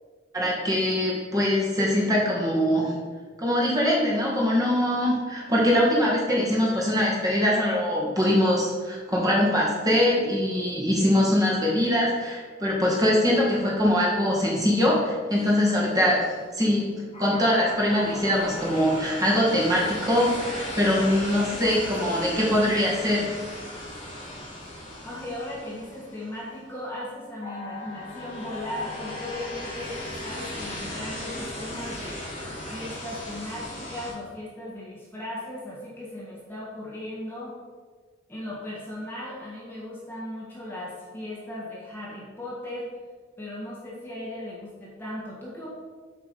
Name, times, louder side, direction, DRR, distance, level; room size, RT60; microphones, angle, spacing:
voice 1, 0.3-2.9 3.4-16.8 17.2-23.3, left 1 dB, 20° right, -5 dB, 2.1 m, -23 dB
sound 1, 15.3-16.3 17.1-26.6 27.4-34.1, left 1 dB, 30° left, 2.6 m, -37 dB
voice 2, 25.0-32.2 32.7-37.5 38.3-42.9 43.4-45.7, left 1 dB, 10° left, -7 dB, 1.6 m, -37 dB
8.1 x 4.8 x 5.4 m, 1.5 s
head